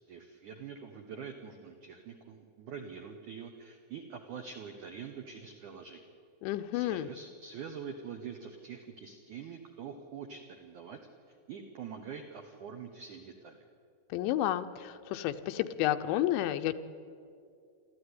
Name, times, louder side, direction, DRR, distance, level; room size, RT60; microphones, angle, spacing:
voice 1, 0.1-6.0 6.7-11.0 11.5-13.7, right 6 dB, 80° right, 4 dB, 1.8 m, -45 dB
voice 2, 6.4-7.1 14.1-16.8, left 13 dB, 80° left, 9 dB, 2.9 m, -31 dB
28.0 x 13.5 x 9.7 m, 2.4 s
omnidirectional pair, 5.4 m